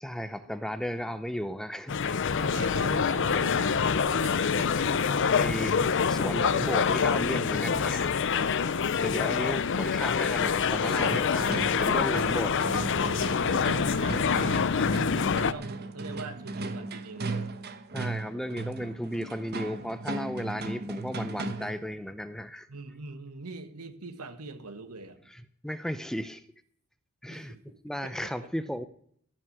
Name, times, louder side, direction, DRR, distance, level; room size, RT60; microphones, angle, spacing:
voice 1, 0.0-2.3 5.4-8.1 9.0-12.8 17.9-22.7 25.6-26.4 27.2-27.6 27.8-28.8, equal, ahead, 12 dB, 0.5 m, -35 dB
sound 1, 1.9-15.5, left 6 dB, 55° left, 0.6 m, -26 dB
voice 2, 2.3-5.1 11.4-12.8 13.4-14.7 15.1-17.4 22.7-25.2 27.3-27.6 28.0-28.3, right 3 dB, 90° right, 9 dB, 1.5 m, -43 dB
sound 2, 10.6-21.9, right 3 dB, 45° right, 1.0 m, -37 dB
15.5 x 6.1 x 8.0 m, 0.65 s
head